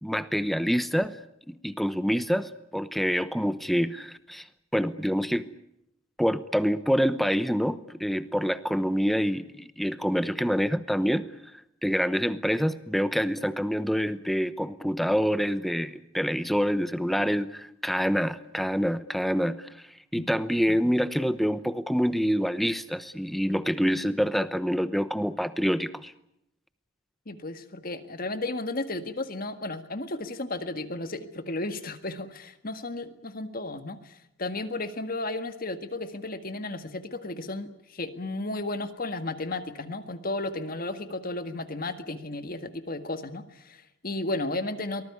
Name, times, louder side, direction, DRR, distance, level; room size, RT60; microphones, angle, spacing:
voice 1, 0.0-1.2 1.5-4.4 4.7-5.4 6.2-11.3 11.8-19.7 20.1-26.1, equal, ahead, 13 dB, 0.9 m, -26 dB
voice 2, 27.3-45.0, left 2 dB, 45° left, 9 dB, 1.8 m, -34 dB
23.5 x 19.5 x 9.7 m, 0.80 s
head